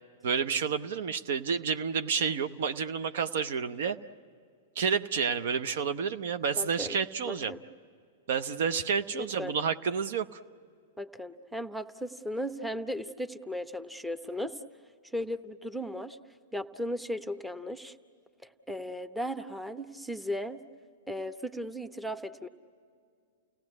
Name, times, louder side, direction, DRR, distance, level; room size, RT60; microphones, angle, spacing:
voice 1, 0.2-4.0 4.8-7.5 8.3-10.4, right 6 dB, 60° right, 11 dB, 0.7 m, -30 dB
voice 2, 6.6-7.0 7.2-7.6 9.1-9.5 11.0-14.6 15.1-16.2 16.5-17.9 18.4-20.6 21.1-22.5, equal, 5° right, 11 dB, 0.9 m, -36 dB
30.0 x 18.0 x 9.6 m, 2.3 s
figure-of-eight pair, 105°, 0 cm